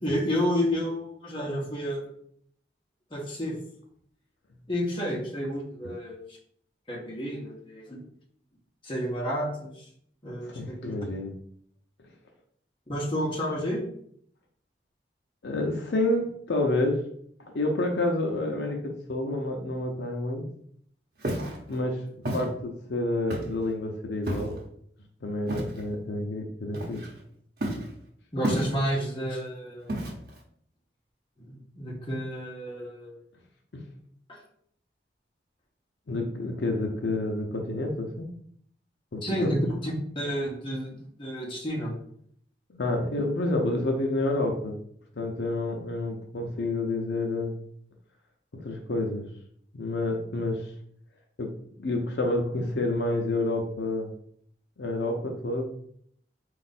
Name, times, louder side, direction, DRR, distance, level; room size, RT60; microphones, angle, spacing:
voice 1, 0.0-2.0 3.1-3.5 4.7-6.2 6.9-8.0 8.8-9.9 10.2-11.0 12.9-13.8 28.3-30.0 31.4-33.2 34.3-34.4 39.2-41.9, equal, 30° left, -2 dB, 1.1 m, -30 dB
voice 2, 10.4-11.3 15.4-17.0 17.4-20.5 21.7-22.0 22.3-24.6 25.2-27.0 33.7-33.8 36.1-38.3 39.1-39.6 42.7-44.8 45.2-47.5 48.5-49.3 49.7-50.7 51.4-51.5 51.8-54.1 54.8-55.6, left 2 dB, 75° left, 2 dB, 0.6 m, -29 dB
Walk footsteps, 21.2-21.6 22.2-22.5 23.3-23.6 24.3-24.6 25.5-25.8 26.7-27.2 27.6-27.9 28.4-29.0 29.9-30.4, right 1 dB, 55° right, 0.9 m, -31 dB
4.2 x 2.5 x 4.1 m, 0.64 s
head